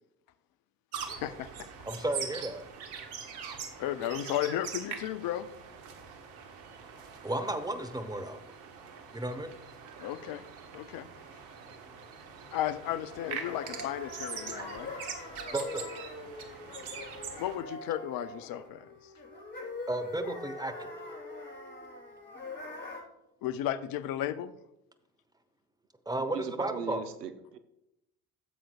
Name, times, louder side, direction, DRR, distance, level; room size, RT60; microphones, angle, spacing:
sound 1, 0.9-17.6, right 7 dB, 65° right, 1.4 m, -43 dB
voice 1, 1.0-1.7 3.8-5.5 10.0-10.5 10.7-11.1 12.5-14.9 17.4-18.9 23.4-24.6, left 11 dB, 50° left, 13 dB, 0.6 m, -34 dB
voice 2, 1.9-2.6 7.2-8.4 9.1-9.5 14.5-14.6 15.5-15.9 19.9-21.0 26.1-27.0, right 1 dB, 10° right, 8 dB, 1.1 m, -33 dB
sound 2, 12.8-23.0, left 2 dB, 20° left, 4.0 m, -43 dB
voice 3, 26.3-27.6, right 8 dB, 85° right, 11 dB, 0.7 m, -38 dB
15.0 x 7.6 x 2.3 m, 0.86 s
figure-of-eight pair, 55°, 46 cm